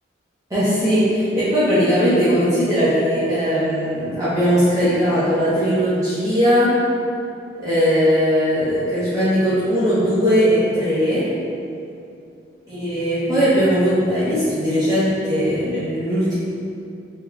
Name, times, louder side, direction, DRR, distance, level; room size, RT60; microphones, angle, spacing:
voice 1, 0.5-6.7 7.6-11.2 12.7-16.4, equal, 20° right, -14 dB, 0.7 m, -19 dB
3.5 x 2.9 x 2.2 m, 2.6 s
head